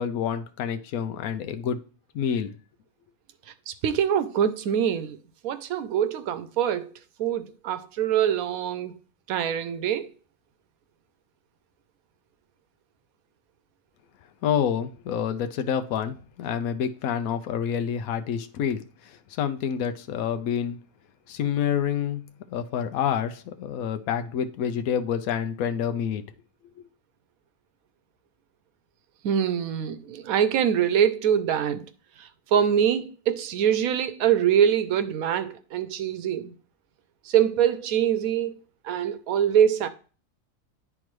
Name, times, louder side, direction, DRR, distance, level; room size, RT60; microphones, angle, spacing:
voice 1, 0.0-1.8 2.1-2.5 14.4-20.8 21.3-22.2 22.5-26.2, left 8 dB, 80° left, 1.1 m, -28 dB
voice 2, 3.7-5.2 5.4-6.9 7.2-9.0 9.3-10.1 29.2-31.8 32.2-36.5 37.3-38.6 38.8-39.9, right 9 dB, 90° right, 1.1 m, -24 dB
10.0 x 3.7 x 3.1 m
omnidirectional pair, 1.5 m